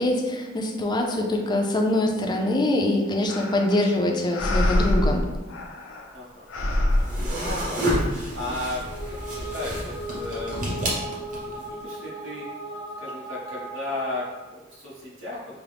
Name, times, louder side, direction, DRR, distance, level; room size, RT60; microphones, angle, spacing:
voice 1, 0.0-5.3, left 1 dB, 20° left, 2 dB, 0.4 m, -24 dB
sound 1, 3.3-3.9 4.3-6.1 6.5-8.0, left 1 dB, 85° left, 0.5 m, -25 dB
voice 2, 6.1-6.5 7.2-10.8 11.4-12.4 13.0-15.4, left 1 dB, 75° right, -7 dB, 1.4 m, -35 dB
sound 2, 6.9-11.7, equal, 40° right, 1.0 m, -29 dB
sound 3, 8.7-14.5, equal, 15° right, 0.6 m, -37 dB
4.9 x 2.0 x 3.3 m, 1.2 s
head